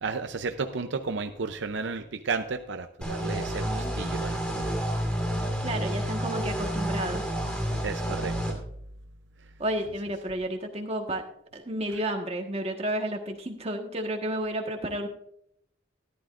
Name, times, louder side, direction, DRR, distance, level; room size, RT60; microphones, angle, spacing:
voice 1, 0.0-4.7 7.8-8.6, right 4 dB, 70° right, 7 dB, 0.6 m, -33 dB
sound 1, 3.0-8.5, equal, 5° left, 1.9 m, -30 dB
voice 2, 3.6-3.9 5.6-7.2 9.6-11.2 11.5-15.1, right 1 dB, 30° right, 3 dB, 1.4 m, -31 dB
14.0 x 11.5 x 2.5 m, 0.72 s
head